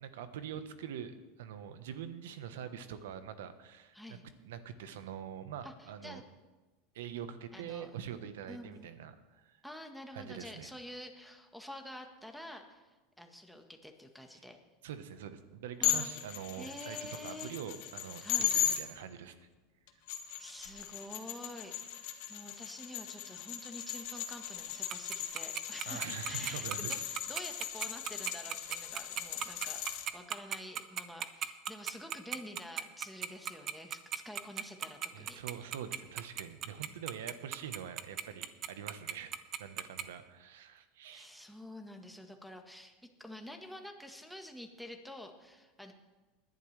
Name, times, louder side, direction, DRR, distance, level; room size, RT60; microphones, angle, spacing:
voice 1, 0.0-4.2 4.4-6.2 6.9-9.6 10.1-10.7 14.8-18.2 18.5-19.4 25.9-27.0 35.1-41.3, right 8 dB, 90° right, 11 dB, 1.1 m, -44 dB
voice 2, 5.6-6.2 7.5-7.9 8.5-8.9 9.6-12.9 13.2-14.6 15.8-16.1 16.6-17.6 18.2-18.6 20.4-35.7 36.9-37.0 41.1-42.9 43.2-45.9, left 1 dB, ahead, 3 dB, 1.4 m, -48 dB
sound 1, 15.8-18.8 19.9-30.1, left 11 dB, 65° left, 1.4 m, -37 dB
Tick-tock, 24.9-40.0, right 10 dB, 40° right, 0.7 m, -36 dB
20.0 x 11.0 x 3.3 m, 1.2 s
supercardioid pair, 130°, 0 cm